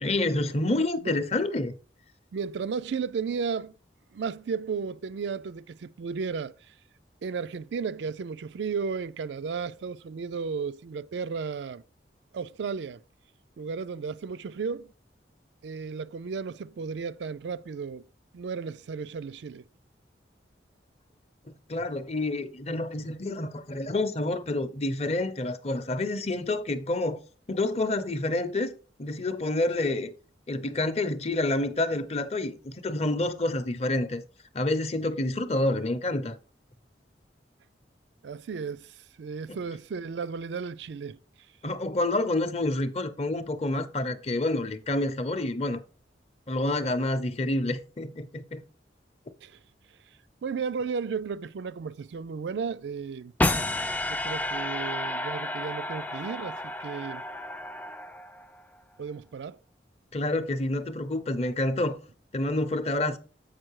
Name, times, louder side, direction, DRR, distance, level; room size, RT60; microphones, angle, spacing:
voice 1, 0.0-1.8 21.5-27.2 27.5-28.7 29.0-30.1 30.5-34.2 34.5-36.4 39.5-39.6 41.6-45.8 46.5-48.6 60.1-62.0 62.3-63.2, left 2 dB, 35° left, 0.7 m, -28 dB
voice 2, 2.3-3.7 4.1-6.5 7.2-11.8 12.3-13.0 13.6-14.9 15.6-18.0 18.3-19.6 38.2-41.2 49.4-49.6 50.4-53.3 54.1-57.2 59.0-59.6, right 5 dB, 75° right, 0.4 m, -34 dB
sound 1, 53.4-58.6, left 1 dB, 10° left, 0.3 m, -31 dB
7.5 x 5.3 x 4.7 m
head